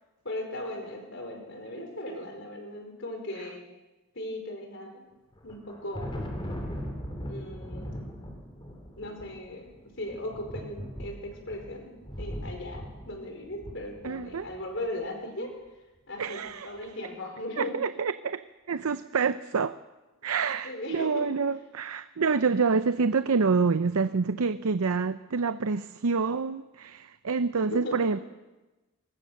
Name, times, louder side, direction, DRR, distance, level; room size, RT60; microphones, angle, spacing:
voice 1, 0.2-3.6 4.1-5.0 5.4-6.2 7.3-8.0 9.0-11.9 12.2-15.5 16.1-17.7 20.2-20.3 20.6-21.3 27.6-28.2, left 1 dB, 55° left, 3 dB, 5.0 m, -38 dB
Thunder, 5.3-14.8, equal, 20° left, 3.5 m, -39 dB
voice 2, 14.0-14.5 16.2-16.7 17.6-18.4 18.7-19.7 20.2-28.2, right 5 dB, 90° right, 12 dB, 0.6 m, -27 dB
24.0 x 20.5 x 6.5 m, 1.1 s
head